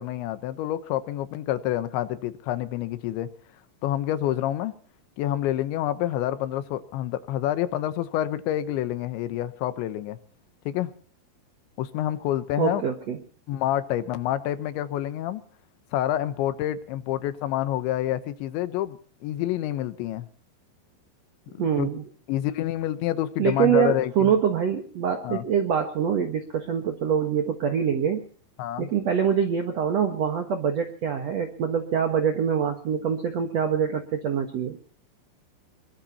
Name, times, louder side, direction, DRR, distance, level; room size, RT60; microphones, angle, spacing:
voice 1, 0.0-3.3 3.8-4.7 5.2-10.2 10.7-10.9 11.8-12.8 13.5-15.4 15.9-20.3 21.8-21.9 22.3-24.3 25.2-25.4 28.6-28.9, left 12 dB, 80° left, 12 dB, 3.2 m, -28 dB
voice 2, 12.6-13.2 21.6-22.0 23.4-28.2 28.8-34.9, right 8 dB, 75° right, 5 dB, 1.5 m, -25 dB
22.5 x 22.0 x 2.9 m, 0.43 s
omnidirectional pair, 5.3 m